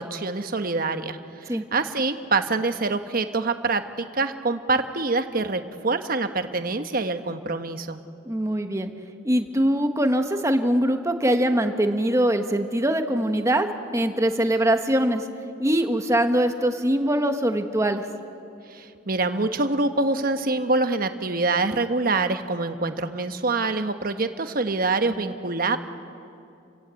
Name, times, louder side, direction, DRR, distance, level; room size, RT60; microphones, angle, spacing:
voice 1, 0.0-8.0 18.7-25.8, right 3 dB, 50° right, 8 dB, 1.1 m, -25 dB
voice 2, 8.2-8.9 9.2-13.7 13.9-15.2 15.6-18.0, right 1 dB, 15° right, 6 dB, 1.2 m, -22 dB
29.0 x 16.5 x 8.3 m, 2.6 s
head